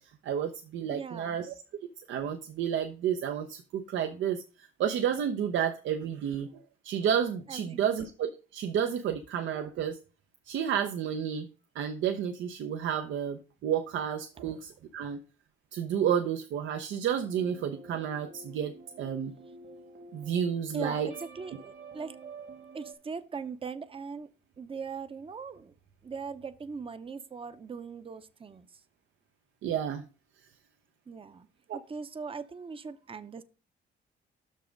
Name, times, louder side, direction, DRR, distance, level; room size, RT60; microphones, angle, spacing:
voice 1, 0.2-1.5 2.1-6.5 6.8-10.0 10.5-11.5 11.7-15.2 15.7-19.3 20.1-21.1 29.6-30.0 31.7-31.8, right 8 dB, 75° right, 0.7 m, -31 dB
voice 2, 0.9-1.4 7.5-7.9 20.7-22.2 22.7-24.3 24.6-25.7 26.0-28.8 31.1-31.5 31.7-33.4, right 5 dB, 25° right, 0.7 m, -40 dB
sound 1, 17.2-22.9, right 4 dB, 50° right, 1.6 m, -49 dB
6.2 x 5.5 x 5.1 m
cardioid pair, 90°, 20 cm